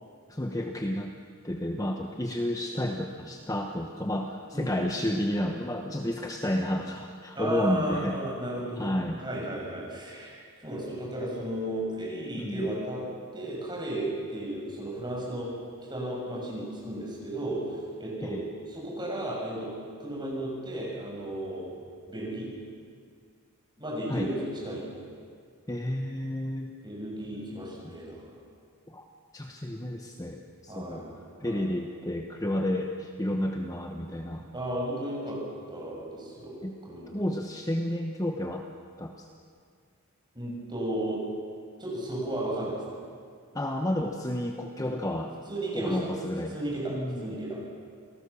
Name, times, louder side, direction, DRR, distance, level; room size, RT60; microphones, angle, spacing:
voice 1, 0.3-1.1 1.4-8.2 8.8-9.2 12.4-12.8 18.2-18.4 24.1-24.3 25.7-26.7 28.9-29.1 29.3-31.0 31.4-34.5 36.6-36.8 37.1-38.6 39.0-39.3 43.5-45.3 45.7-46.5 46.9-47.4, left 1 dB, 15° left, 3 dB, 1.0 m, -31 dB
voice 2, 7.4-10.3 10.6-13.0 13.3-15.5 15.9-18.4 18.7-19.7 20.0-21.7 22.1-22.5 23.8-25.0 26.8-28.3 30.7-31.1 31.4-31.7 34.5-35.4 35.7-37.3 40.3-41.2 41.8-42.8 44.8-44.9 45.5-46.0 46.5-46.9 47.2-47.6, right 1 dB, 20° right, -4 dB, 7.1 m, -34 dB
28.5 x 18.0 x 7.0 m, 2.1 s
head